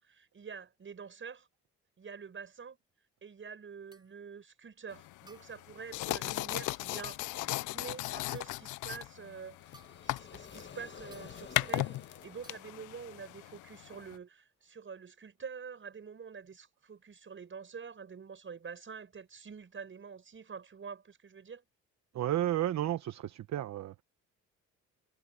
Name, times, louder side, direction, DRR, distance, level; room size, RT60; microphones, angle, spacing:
voice 1, 0.0-1.5 2.0-2.8 3.2-9.7 10.0-21.6, right 6 dB, 40° right, 6.3 m, -47 dB
sound 1, 3.9-4.2 5.3-5.7 6.9-7.2 8.4-8.7 9.7-10.2 11.1-11.4 12.4-12.7, right 2 dB, 15° right, 3.9 m, -60 dB
sound 2, 4.9-14.2, left 18 dB, 80° left, 0.5 m, -38 dB
sound 3, 9.4-13.4, left 6 dB, 35° left, 1.6 m, -52 dB
voice 2, 22.1-24.0, right 12 dB, 65° right, 1.1 m, -32 dB
cardioid pair, 90°, 30 cm